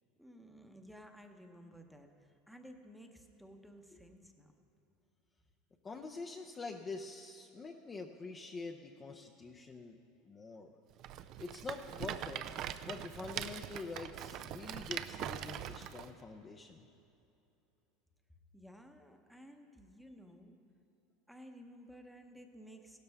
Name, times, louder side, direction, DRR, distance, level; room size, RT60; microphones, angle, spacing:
voice 1, 0.2-2.1 2.5-4.5 18.5-20.6 21.3-23.0, equal, ahead, 4 dB, 0.9 m, -55 dB
voice 2, 5.8-10.0 10.2-10.7 11.4-12.4 12.9-16.9, left 3 dB, 20° left, 2 dB, 0.6 m, -45 dB
Rattle, 11.0-16.1, right 11 dB, 45° right, 0.4 m, -42 dB
16.0 x 12.5 x 3.4 m, 2.8 s
supercardioid pair, 140°, 0 cm